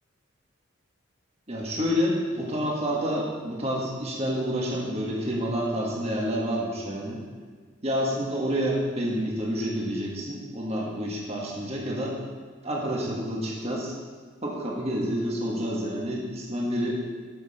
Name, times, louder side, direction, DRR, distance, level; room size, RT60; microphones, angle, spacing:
voice 1, 1.5-7.2 7.8-12.2 12.6-13.9 14.4-17.0, equal, 30° right, -3 dB, 1.6 m, -28 dB
9.4 x 7.3 x 4.3 m, 1.5 s
head